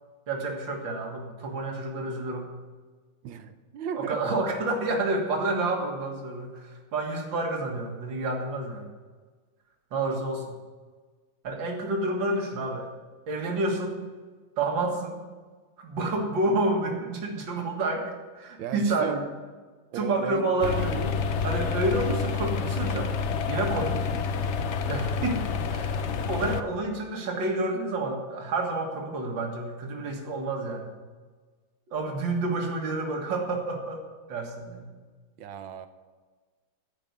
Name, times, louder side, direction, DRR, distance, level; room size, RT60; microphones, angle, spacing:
voice 1, 0.3-2.5 4.0-8.9 9.9-10.6 11.4-12.9 13.3-14.0 14.6-15.2 15.8-18.1 18.4-19.2 19.9-23.1 23.5-24.0 24.9-26.0 26.3-30.9 31.9-34.0 34.3-34.9, right 2 dB, 75° right, 1 dB, 2.6 m, -29 dB
voice 2, 3.2-4.2 18.6-19.2 19.9-20.5 35.4-35.9, right 8 dB, 90° right, 9 dB, 1.6 m, -35 dB
sound 1, 20.6-26.6, left 5 dB, 70° left, 0.6 m, -28 dB
15.0 x 5.4 x 9.6 m, 1.4 s
omnidirectional pair, 2.1 m